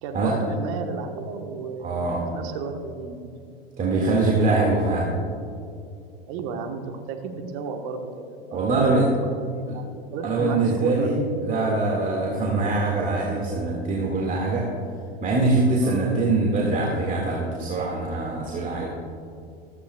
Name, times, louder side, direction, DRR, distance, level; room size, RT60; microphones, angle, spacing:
voice 1, 0.0-3.4 6.3-9.1 9.5-11.4 15.8-16.2 18.7-18.9, right 5 dB, 50° right, 5 dB, 1.2 m, -33 dB
voice 2, 1.8-2.2 3.8-5.1 8.5-9.1 10.2-14.7 15.2-18.9, right 3 dB, 25° right, -3 dB, 1.9 m, -23 dB
14.5 x 14.0 x 2.3 m, 2.5 s
figure-of-eight pair, 85°, 30 cm